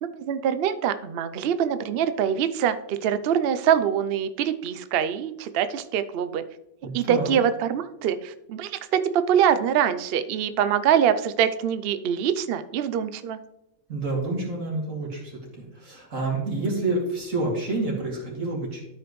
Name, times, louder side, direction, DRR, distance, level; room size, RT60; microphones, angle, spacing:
voice 1, 0.0-6.4 6.9-13.4, right 9 dB, 90° right, 11 dB, 0.5 m, -24 dB
voice 2, 6.8-7.3 13.9-18.8, right 2 dB, 55° right, -2 dB, 2.7 m, -28 dB
12.5 x 5.1 x 3.1 m, 0.87 s
omnidirectional pair, 1.6 m